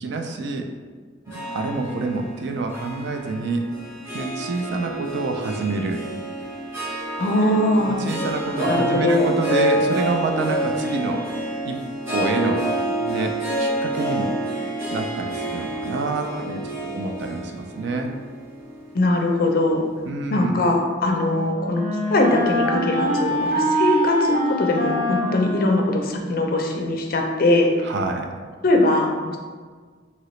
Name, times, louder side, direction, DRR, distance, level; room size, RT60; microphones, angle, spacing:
voice 1, 0.0-0.7 1.5-3.7 4.1-6.0 7.4-11.3 11.6-11.8 12.1-12.7 13.0-14.3 14.9-18.1 20.0-20.6 27.8-28.3, right 3 dB, 60° right, 4 dB, 0.3 m, -27 dB
Harp, 1.3-19.7, right 1 dB, 15° right, 1.0 m, -28 dB
voice 2, 7.2-8.0 8.7-9.3 18.9-19.8 20.3-21.8 22.1-27.7 28.6-29.4, left 1 dB, 50° left, 2 dB, 0.4 m, -21 dB
Wind instrument woodwind instrument, 20.8-26.6, equal, 40° right, 0.7 m, -25 dB
2.9 x 2.8 x 3.0 m, 1.5 s
head